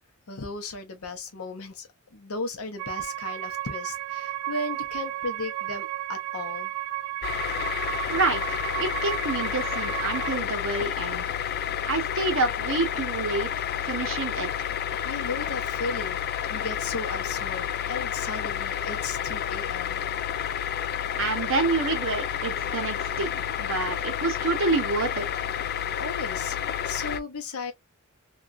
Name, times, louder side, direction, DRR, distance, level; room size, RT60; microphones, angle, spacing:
voice 1, 0.3-6.7 15.0-20.0 25.7-26.6 26.8-27.7, left 3 dB, 90° left, 0.8 m, -36 dB
sound 1, 2.8-10.4, right 14 dB, 85° right, 0.3 m, -33 dB
sound 2, 7.2-27.2, left 9 dB, 50° left, 0.3 m, -30 dB
voice 2, 8.1-11.2 11.6-13.5 13.8-14.7 21.2-25.5, right 3 dB, 65° right, 0.9 m, -28 dB
2.9 x 2.3 x 2.4 m
head